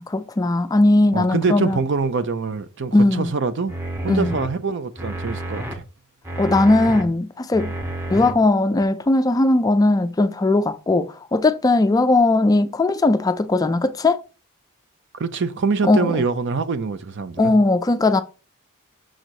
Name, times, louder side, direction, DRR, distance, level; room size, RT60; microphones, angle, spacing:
voice 1, 0.0-1.8 2.9-3.3 4.1-4.3 6.4-7.7 8.1-14.2 15.9-16.2 17.4-18.2, left 2 dB, 15° left, 0.3 m, -18 dB
voice 2, 1.1-3.8 4.0-5.8 15.2-17.5, right 4 dB, 55° right, 0.6 m, -24 dB
sound 1, 3.7-4.5 5.0-5.7 6.2-7.0 7.5-8.3 8.8-8.9, right 1 dB, 10° right, 0.9 m, -30 dB
6.3 x 3.9 x 4.6 m
head